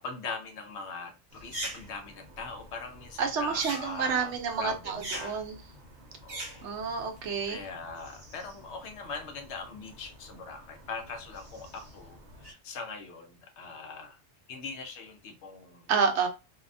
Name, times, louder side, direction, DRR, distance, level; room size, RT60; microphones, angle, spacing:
voice 1, 0.0-5.4 6.2-6.7 7.5-14.2 14.5-15.9, left 4 dB, 75° left, 0.9 m, -41 dB
sound 1, 1.3-12.5, right 1 dB, 45° right, 0.8 m, -45 dB
voice 2, 3.2-5.6 6.6-7.6 15.9-16.3, right 5 dB, 75° right, 0.9 m, -29 dB
2.7 x 2.1 x 2.5 m
omnidirectional pair, 1.2 m